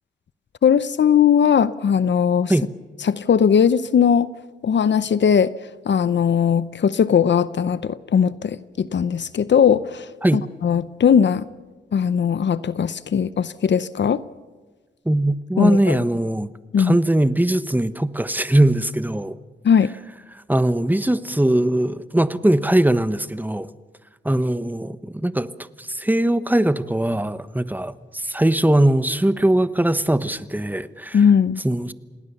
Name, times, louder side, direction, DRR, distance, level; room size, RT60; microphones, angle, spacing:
voice 1, 0.6-2.5 3.0-4.3 4.6-5.5 5.9-11.5 11.9-14.2 15.6-16.0 16.7-17.0 19.6-19.9 31.1-31.6, left 7 dB, 70° left, 0.7 m, -19 dB
voice 2, 15.0-16.5 16.8-19.3 20.5-23.7 24.2-25.5 25.8-31.2 31.6-31.9, right 1 dB, 10° right, 1.2 m, -20 dB
28.0 x 19.0 x 7.0 m
cardioid pair, 55°, 19 cm